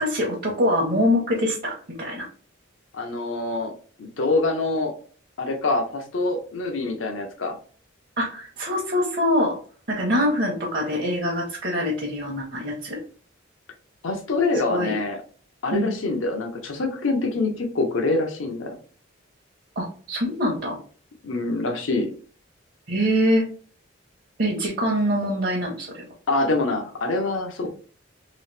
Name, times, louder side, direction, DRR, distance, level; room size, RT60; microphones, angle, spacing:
voice 1, 0.0-2.3 8.2-9.6 9.9-13.0 14.7-14.9 15.7-15.9 19.8-20.8 22.9-23.5 24.4-26.0, equal, 50° right, -3 dB, 0.8 m, -24 dB
voice 2, 2.9-3.7 4.0-4.9 5.4-7.6 14.0-15.2 15.6-18.7 21.2-22.1 26.3-27.7, left 2 dB, 80° left, 3 dB, 0.7 m, -25 dB
3.0 x 2.8 x 3.2 m, 0.42 s
head